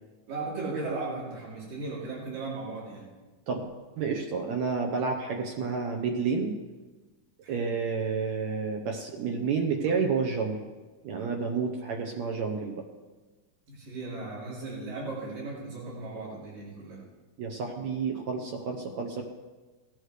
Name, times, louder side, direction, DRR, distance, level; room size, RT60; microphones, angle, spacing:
voice 1, 0.3-3.1 7.4-7.7 13.7-17.0, right 3 dB, 90° right, -6 dB, 4.8 m, -36 dB
voice 2, 4.0-6.5 7.5-10.6 11.0-12.8 17.4-19.2, right 5 dB, 70° right, 2 dB, 2.0 m, -30 dB
17.5 x 11.0 x 3.3 m, 1.3 s
omnidirectional pair, 3.8 m